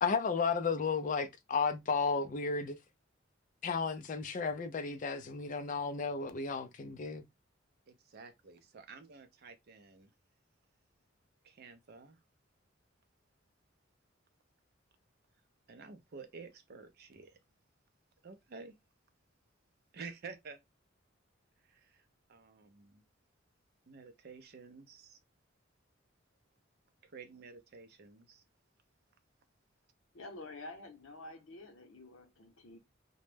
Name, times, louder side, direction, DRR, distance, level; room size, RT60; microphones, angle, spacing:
voice 1, 0.0-2.8 3.6-7.3, left 5 dB, 40° left, 0.4 m, -33 dB
voice 2, 7.9-10.1 11.4-12.2 15.7-17.4 18.2-18.7 19.9-20.6 21.7-22.0 22.3-23.0 23.9-25.2 27.0-28.4, right 4 dB, 50° right, 0.5 m, -51 dB
voice 3, 30.1-32.8, left 2 dB, 90° left, 0.7 m, -49 dB
2.1 x 2.0 x 3.1 m
head